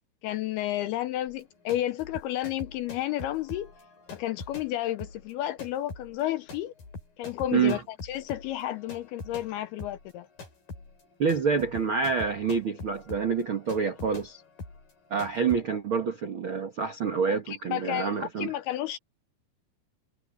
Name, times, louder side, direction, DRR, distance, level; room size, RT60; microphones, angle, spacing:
voice 1, 0.2-3.7 4.1-6.7 7.2-10.3 17.3-19.0, left 13 dB, 75° left, 2.4 m, -32 dB
sound 1, 1.3-9.5 9.8-15.6, left 3 dB, 50° left, 8.2 m, -44 dB
voice 2, 11.2-14.4 15.1-18.5, right 6 dB, 75° right, 1.1 m, -27 dB
omnidirectional pair, 5.1 m